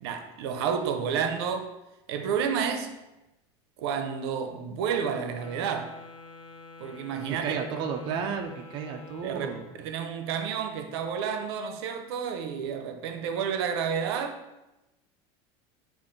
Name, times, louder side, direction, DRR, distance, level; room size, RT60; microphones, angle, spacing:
voice 1, 0.0-1.7 2.1-2.9 3.8-6.0 6.8-7.4 9.2-9.5 9.8-14.4, right 7 dB, 85° right, 0.6 m, -30 dB
Wind instrument woodwind instrument, 5.3-9.9, left 3 dB, 45° left, 0.5 m, -48 dB
voice 2, 7.4-9.7, right 6 dB, 35° right, 0.4 m, -32 dB
5.1 x 2.5 x 3.6 m
cardioid pair, 160°, 13 cm